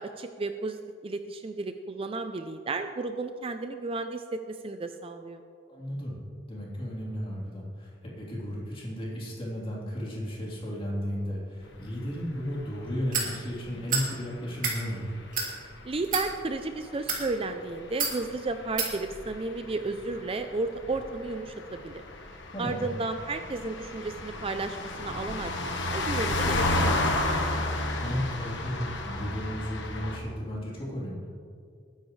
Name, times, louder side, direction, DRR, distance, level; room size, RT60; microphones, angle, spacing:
voice 1, 0.0-5.4 15.8-22.0 22.6-27.6, right 3 dB, 30° right, 7 dB, 0.5 m, -33 dB
voice 2, 5.7-6.2 6.5-15.1 22.5-22.9 28.0-31.4, equal, 30° left, -5 dB, 3.6 m, -34 dB
sound 1, 11.6-30.2, left 2 dB, 70° left, 1.4 m, -33 dB
sound 2, 13.1-13.3 13.9-14.1 14.5-14.8 15.3-15.5 16.0-16.3 16.9-17.2 18.0-18.2 18.8-18.9, right 5 dB, 50° right, 2.7 m, -28 dB
20.5 x 10.0 x 3.3 m, 2.3 s
head